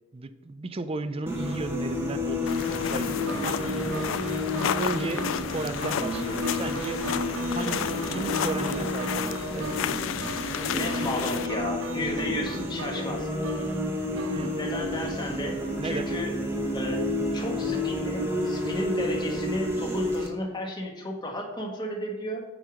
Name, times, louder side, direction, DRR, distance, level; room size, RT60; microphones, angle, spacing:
voice 1, 0.1-4.3 4.8-7.0 7.5-9.8 14.3-14.6 15.8-16.1, right 3 dB, 30° right, 11 dB, 0.5 m, -35 dB
sound 1, 1.3-20.3, left 1 dB, 10° right, 1.1 m, -30 dB
sound 2, 2.5-11.5, left 9 dB, 75° left, 0.3 m, -32 dB
sound 3, 3.3-15.4, right 5 dB, 85° right, 0.5 m, -41 dB
voice 2, 10.7-13.3 14.6-16.3 16.7-17.0 17.3-22.4, left 1 dB, 25° left, 0 dB, 1.5 m, -33 dB
9.1 x 4.7 x 5.0 m, 1.2 s
head